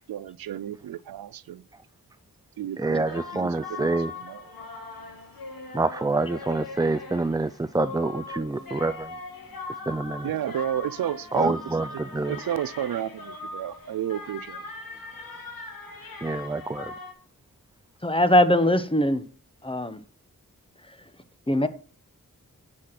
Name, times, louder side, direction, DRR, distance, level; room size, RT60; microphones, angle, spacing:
voice 1, 0.1-1.6 2.6-3.9 4.3-4.4 10.2-11.5 12.3-14.6, right 11 dB, 85° right, 0.5 m, -32 dB
voice 2, 2.8-4.1 5.7-9.2 9.9-10.3 11.3-12.4 16.2-16.9, right 3 dB, 10° right, 0.4 m, -27 dB
sound 1, 3.1-17.1, left 3 dB, 85° left, 2.6 m, -40 dB
voice 3, 18.0-19.2 19.6-20.0 21.5-21.7, left 1 dB, 15° left, 1.1 m, -21 dB
10.5 x 5.1 x 5.8 m
cardioid pair, 50°, 34 cm